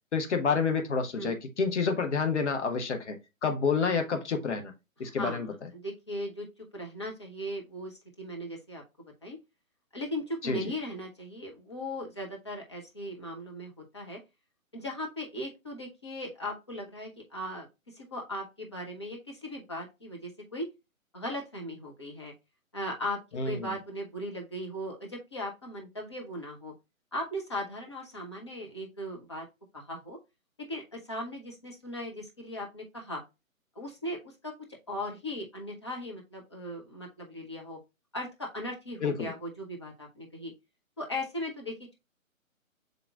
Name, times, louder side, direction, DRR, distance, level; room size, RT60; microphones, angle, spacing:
voice 1, 0.1-3.2 3.4-4.7 5.0-5.5 10.4-10.6 23.3-23.7 39.0-39.3, left 5 dB, 55° left, 0.9 m, -28 dB
voice 2, 5.0-5.5 5.7-6.5 6.7-9.4 9.9-14.2 14.7-17.7 17.9-20.7 21.1-22.3 22.7-26.7 27.1-29.5 29.7-30.2 30.6-33.2 33.8-34.5 34.9-37.8 38.1-40.5 41.0-41.9, left 1 dB, 20° left, 0.5 m, -38 dB
5.5 x 3.9 x 2.3 m
figure-of-eight pair, 135°, 41 cm